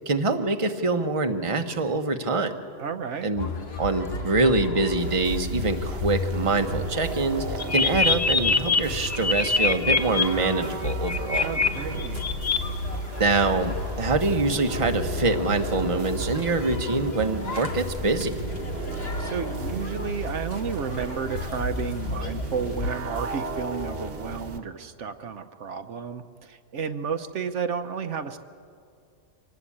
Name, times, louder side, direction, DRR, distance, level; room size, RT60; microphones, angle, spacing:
voice 1, 0.1-2.5 3.2-3.5 3.8-7.4 7.7-11.5 13.2-18.4, right 3 dB, 30° right, 6 dB, 1.1 m, -25 dB
voice 2, 2.8-3.3 11.4-12.2 18.9-28.4, right 6 dB, 75° right, 8 dB, 1.2 m, -32 dB
sound 1, 3.4-22.9, left 2 dB, 55° left, 2.0 m, -34 dB
sound 2, 5.0-24.6, right 3 dB, 50° right, 1.4 m, -36 dB
sound 3, 7.6-10.2 10.8-11.7 12.0-12.6, left 5 dB, 15° left, 0.7 m, -23 dB
25.0 x 18.5 x 8.6 m, 2.3 s
omnidirectional pair, 1.3 m